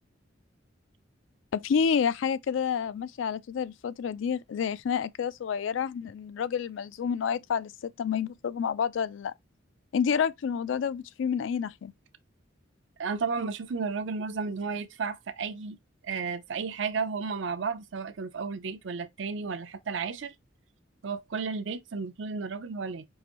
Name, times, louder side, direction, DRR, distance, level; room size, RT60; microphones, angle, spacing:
voice 1, 1.5-9.3 9.9-11.9, left 7 dB, 75° left, 0.3 m, -29 dB
voice 2, 13.0-15.8 16.0-20.3 21.0-23.1, right 5 dB, 70° right, 0.5 m, -33 dB
4.6 x 2.6 x 3.0 m
head